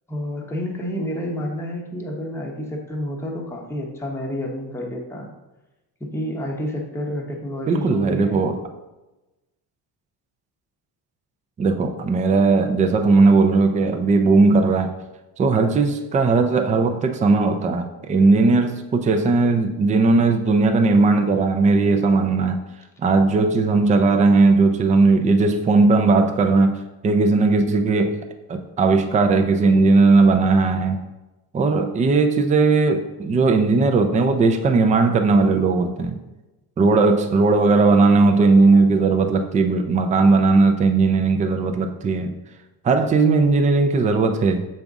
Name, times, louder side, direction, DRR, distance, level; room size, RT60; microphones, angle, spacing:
voice 1, 0.1-5.3 6.0-8.4, equal, 5° left, -1 dB, 0.8 m, -29 dB
voice 2, 7.7-8.6 11.6-14.9 15.4-22.6 23.0-28.2 28.5-31.0 31.5-36.2 36.8-42.4 42.8-44.6, right 3 dB, 20° right, 5 dB, 0.4 m, -17 dB
7.0 x 5.3 x 3.6 m, 1.0 s
cardioid pair, 170°, 39 cm